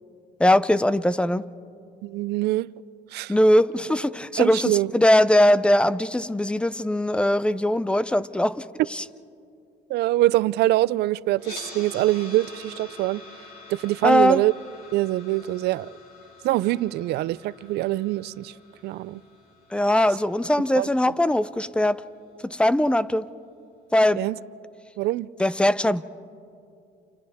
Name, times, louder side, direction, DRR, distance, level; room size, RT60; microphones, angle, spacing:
voice 1, 0.4-1.4 3.3-8.6 8.9-9.0 14.0-14.4 19.7-22.0 22.4-23.3 23.9-24.2 25.4-26.0, left 1 dB, 5° left, 0.5 m, -20 dB
voice 2, 2.0-2.7 3.1-3.3 4.4-4.9 9.9-13.2 13.7-14.5 14.9-15.9 16.4-18.5 18.8-19.2 20.7-20.9 24.2-24.4 25.0-25.3, right 16 dB, 75° right, 0.5 m, -24 dB
sound 1, 11.4-21.5, left 3 dB, 70° left, 6.0 m, -46 dB
29.5 x 29.5 x 3.6 m
cardioid pair, 110°, 17 cm